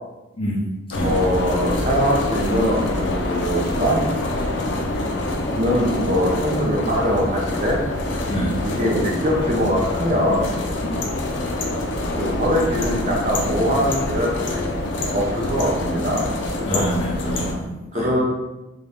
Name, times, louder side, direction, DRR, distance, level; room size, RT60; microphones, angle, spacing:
voice 1, 0.4-1.2 8.3-8.5 10.8-10.9 16.7-18.1, right 1 dB, 25° left, -3 dB, 0.7 m, -27 dB
sound 1, 0.9-17.5, left 1 dB, 65° left, 0.5 m, -25 dB
voice 2, 1.0-4.0 5.6-7.8 8.6-10.5 12.2-14.8 15.1-16.2 16.6-16.8 17.9-18.2, equal, 40° right, -3 dB, 0.8 m, -22 dB
3.5 x 2.7 x 3.5 m, 1.0 s
head